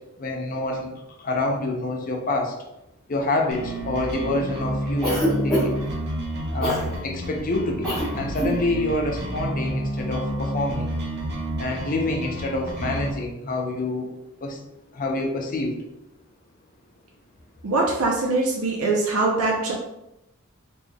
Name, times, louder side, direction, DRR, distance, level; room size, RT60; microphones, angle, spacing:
voice 1, 0.2-0.9 1.2-2.5 3.1-5.8 6.5-10.9 11.6-14.1 14.4-14.6 14.9-15.7, left 2 dB, 40° left, 1 dB, 0.6 m, -27 dB
sound 1, 3.5-13.1, right 1 dB, 50° right, 0.7 m, -30 dB
Cough, 5.0-5.9 6.6-6.9 7.8-8.1 8.3-8.6, equal, 5° left, 1.4 m, -24 dB
voice 2, 17.6-19.7, right 3 dB, 85° right, -2 dB, 0.6 m, -22 dB
4.1 x 3.2 x 2.2 m, 0.87 s
head